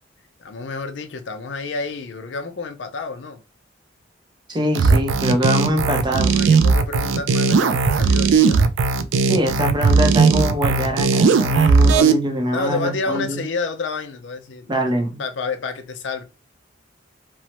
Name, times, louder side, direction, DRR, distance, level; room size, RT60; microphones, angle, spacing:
voice 1, 0.4-3.4 6.3-8.6 12.5-14.7 15.2-16.2, left 4 dB, 70° left, 0.5 m, -29 dB
voice 2, 4.5-6.4 9.2-13.4 14.7-15.2, equal, 25° right, 0.5 m, -23 dB
sound 1, 4.7-12.1, right 4 dB, 75° right, 0.3 m, -17 dB
3.0 x 2.0 x 2.9 m
head